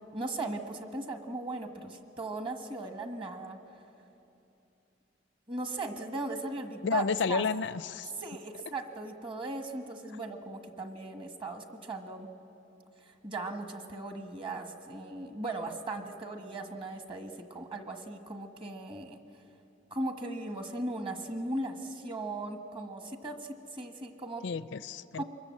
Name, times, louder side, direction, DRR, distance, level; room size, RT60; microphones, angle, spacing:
voice 1, 0.1-3.6 5.5-7.4 8.2-12.3 13.0-19.2 19.9-24.4 25.1-25.2, right 2 dB, 30° right, 6 dB, 1.5 m, -38 dB
voice 2, 6.8-8.1 24.4-25.2, left 5 dB, 70° left, 16 dB, 0.5 m, -31 dB
24.5 x 21.5 x 7.6 m, 2.9 s
head